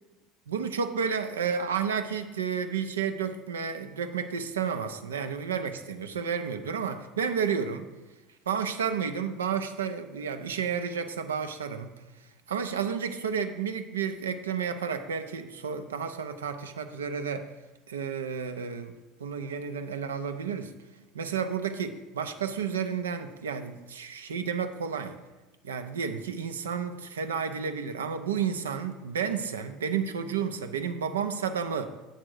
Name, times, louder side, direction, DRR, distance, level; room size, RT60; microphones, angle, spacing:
voice 1, 0.5-7.9 8.5-11.9 12.5-17.5 17.9-18.9 19.2-20.7 21.1-25.2 25.6-31.9, right 6 dB, 85° right, 9 dB, 0.5 m, -31 dB
7.9 x 3.7 x 6.3 m, 1.1 s
hypercardioid pair, 70°, 0 cm